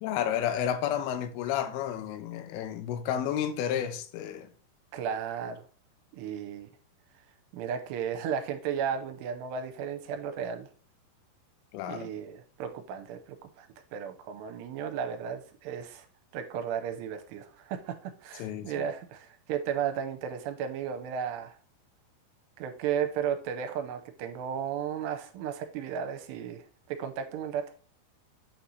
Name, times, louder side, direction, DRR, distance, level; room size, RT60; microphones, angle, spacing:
voice 1, 0.0-4.5 11.7-12.1 18.4-18.7, left 9 dB, 85° left, 2.3 m, -31 dB
voice 2, 4.9-5.6 6.1-6.7 7.5-10.7 11.9-16.1 16.3-21.6 22.6-27.8, right 8 dB, 85° right, 2.8 m, -34 dB
8.5 x 3.1 x 4.0 m
omnidirectional pair, 5.0 m